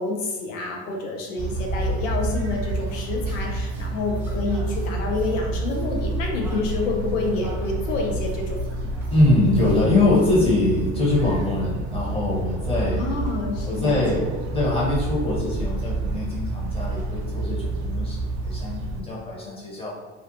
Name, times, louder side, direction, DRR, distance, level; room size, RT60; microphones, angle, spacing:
voice 1, 0.0-8.9 12.9-14.0, left 3 dB, 85° left, 0 dB, 0.6 m, -28 dB
sound 1, 1.4-19.0, right 2 dB, 45° right, 0.5 m, -28 dB
sound 2, 2.9-10.3, equal, 5° right, 0.6 m, -44 dB
voice 2, 9.1-13.0 13.6-19.9, left 2 dB, 15° left, -5 dB, 1.0 m, -23 dB
2.5 x 2.1 x 2.8 m, 1.3 s
hypercardioid pair, 90°, 38 cm